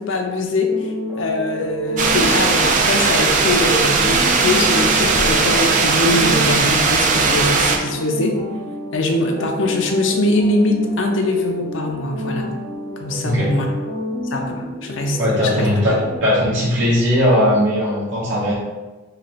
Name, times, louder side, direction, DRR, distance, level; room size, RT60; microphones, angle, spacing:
voice 1, 0.0-8.4 8.9-12.5 13.0-13.7 14.3-15.7, left 2 dB, 70° left, 2 dB, 0.5 m, -22 dB
sound 1, 0.7-16.2, left 1 dB, 10° right, 0.9 m, -30 dB
sound 2, 2.0-7.8, right 4 dB, 40° right, 0.3 m, -17 dB
voice 2, 15.2-18.5, equal, 65° right, -7 dB, 0.9 m, -18 dB
3.2 x 2.3 x 4.0 m, 1.2 s
head